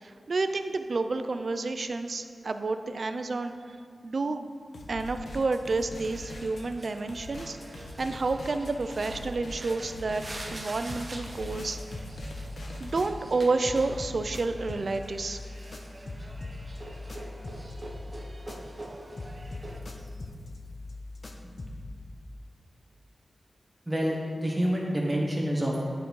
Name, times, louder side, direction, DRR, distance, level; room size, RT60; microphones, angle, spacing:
voice 1, 0.0-3.5 4.0-4.5 4.9-10.2 10.5-11.8 12.8-15.4, right 3 dB, 55° right, 8 dB, 0.4 m, -30 dB
sound 1, 4.7-13.1, left 1 dB, 85° left, 1.0 m, -43 dB
sound 2, 6.0-19.8, right 1 dB, 35° right, 0.8 m, -46 dB
sound 3, 10.9-13.4 13.6-18.9 19.2-22.0, left 2 dB, 45° left, 0.7 m, -41 dB
voice 2, 23.9-25.8, equal, 10° right, -3 dB, 1.5 m, -27 dB
10.0 x 3.8 x 4.6 m, 2.2 s
wide cardioid pair, 100°, 0 cm